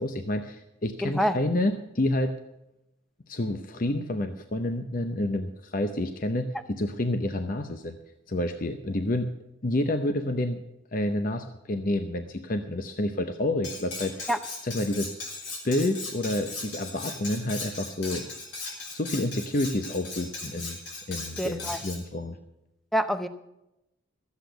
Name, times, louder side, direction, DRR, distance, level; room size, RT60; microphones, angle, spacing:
voice 1, 0.0-2.3 3.3-8.0 8.3-9.3 9.6-10.6 10.9-14.3 14.6-15.1 15.6-18.3 18.9-20.8 21.1-22.4, left 1 dB, 45° left, 7 dB, 0.7 m, -29 dB
voice 2, 1.0-1.4 14.3-14.4 21.4-21.8 22.9-23.3, equal, ahead, 10 dB, 0.6 m, -26 dB
Cutlery silverware, 13.6-22.0, left 3 dB, 70° left, 3.4 m, -38 dB
13.5 x 8.2 x 8.0 m, 0.87 s
head